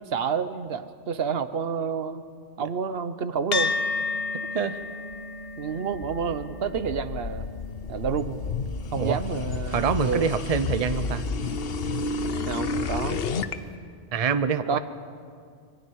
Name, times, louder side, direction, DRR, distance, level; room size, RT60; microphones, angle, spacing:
voice 1, 0.1-2.2 2.6-3.7 5.6-7.4 7.9-8.4 8.9-10.3 12.5-13.2 14.7-14.8, right 6 dB, 70° right, 12 dB, 1.0 m, -29 dB
sound 1, 3.5-12.2, left 3 dB, 40° left, 0.7 m, -35 dB
voice 2, 4.3-4.8 9.0-9.2 9.7-11.2 14.1-14.8, right 6 dB, 40° right, 11 dB, 0.7 m, -25 dB
sound 2, 5.5-13.5, left 4 dB, 70° left, 1.0 m, -31 dB
25.5 x 23.0 x 4.7 m, 2.1 s
omnidirectional pair, 1.0 m